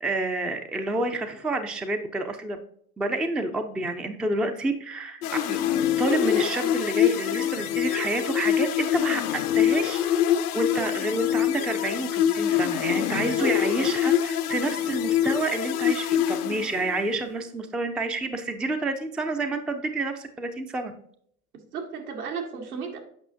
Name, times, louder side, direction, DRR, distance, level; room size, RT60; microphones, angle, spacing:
voice 1, 0.0-2.6 3.0-5.6 6.0-9.2 9.5-10.1 10.5-20.9, right 2 dB, ahead, 7 dB, 0.3 m, -29 dB
sound 1, 5.2-17.1, left 10 dB, 85° left, 0.7 m, -25 dB
voice 2, 13.2-13.5 21.6-23.0, right 5 dB, 80° right, 1 dB, 1.9 m, -34 dB
8.5 x 5.5 x 2.7 m, 0.66 s
hypercardioid pair, 100°, 44 cm